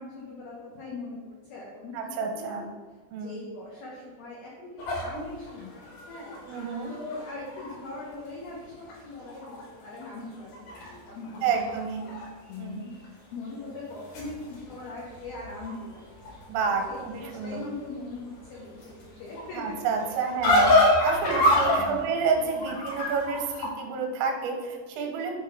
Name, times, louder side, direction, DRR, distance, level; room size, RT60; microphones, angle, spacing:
voice 1, 0.0-2.7 3.1-11.6 12.0-12.9 13.3-19.8 20.1-20.2 20.6-20.7 21.2-22.1, left 3 dB, 85° left, -4 dB, 2.1 m, -41 dB
voice 2, 1.9-2.7 3.1-3.4 6.5-6.9 11.4-12.1 12.6-12.8 16.5-17.6 19.5-25.3, right 5 dB, 85° right, 3 dB, 3.2 m, -29 dB
sound 1, 4.8-8.0 8.5-8.6 8.9-9.7 9.9-12.3 12.5-13.1 13.7-23.7, left 1 dB, 65° left, 2.1 m, -28 dB
7.9 x 3.2 x 4.7 m, 1.4 s
omnidirectional pair, 5.9 m